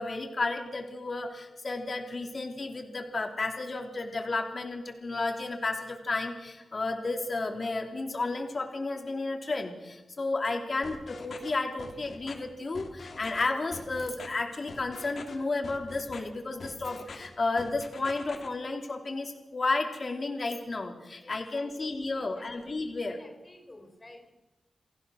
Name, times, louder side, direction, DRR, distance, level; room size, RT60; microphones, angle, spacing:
voice 1, 0.0-23.2, left 3 dB, 45° left, 3 dB, 3.1 m, -32 dB
sound 1, 10.8-11.5 11.8-12.3 12.7-13.4 13.7-14.3 14.7-15.3 15.6-16.2 16.6-17.3 17.6-18.5, left 4 dB, 70° left, 3.0 m, -43 dB
voice 2, 21.2-21.7 22.4-22.5 22.8-24.3, left 1 dB, 25° left, 7 dB, 4.4 m, -52 dB
28.0 x 15.0 x 6.4 m, 1.0 s
wide cardioid pair, 90°, 0 cm